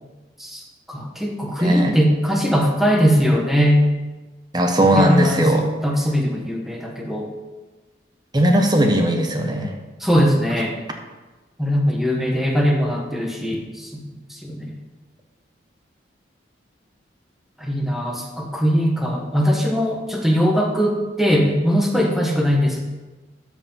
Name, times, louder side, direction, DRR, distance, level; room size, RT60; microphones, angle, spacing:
voice 1, 0.9-3.8 4.8-7.3 10.0-10.7 11.6-14.0 14.3-14.7 17.6-22.8, equal, ahead, 0 dB, 1.2 m, -20 dB
voice 2, 1.6-1.9 4.5-5.6 8.3-9.7, right 1 dB, 25° right, 3 dB, 1.0 m, -17 dB
13.0 x 4.8 x 5.5 m, 1.2 s
head